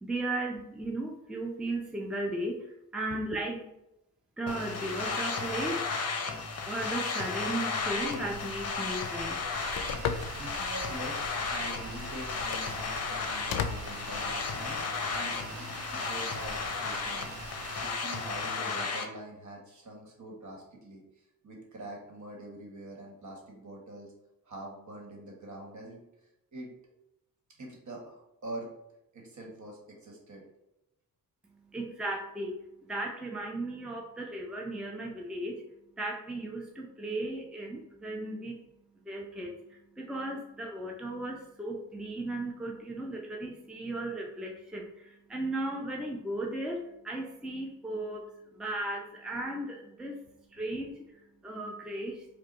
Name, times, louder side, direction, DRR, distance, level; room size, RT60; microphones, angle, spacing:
voice 1, 0.0-2.7 2.9-3.7 4.4-6.0 6.6-9.4 31.7-32.6 32.9-35.6 36.0-38.6 39.0-48.3 48.6-50.2 50.5-51.0 51.4-52.3, right 1 dB, ahead, 0 dB, 0.5 m, -36 dB
sound 1, 4.5-19.1, left 4 dB, 45° left, 0.7 m, -34 dB
Telephone, 7.8-14.8, left 7 dB, 80° left, 0.5 m, -39 dB
Rain, 9.5-17.8, right 5 dB, 80° right, 0.6 m, -45 dB
voice 2, 10.4-17.2 17.8-24.1 24.4-26.0 26.5-26.9 27.6-28.7 29.1-30.4, right 1 dB, 50° right, 0 dB, 1.4 m, -44 dB
4.8 x 2.3 x 3.1 m, 0.88 s
cardioid pair, 65°, 36 cm